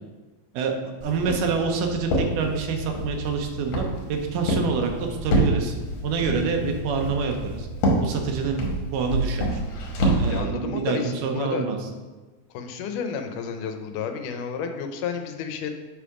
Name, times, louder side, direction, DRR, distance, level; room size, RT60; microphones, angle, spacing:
Walk footsteps, 1.0-10.4, right 1 dB, 70° left, 2.4 m, -27 dB
voice 1, 1.0-5.7 6.0-7.7 8.0-8.7 8.9-9.6 10.2-11.8, right 5 dB, 90° right, 3 dB, 2.3 m, -26 dB
voice 2, 10.2-11.7 12.5-15.7, left 6 dB, 90° left, 6 dB, 2.2 m, -31 dB
7.3 x 3.5 x 4.9 m, 1.3 s
omnidirectional pair, 3.6 m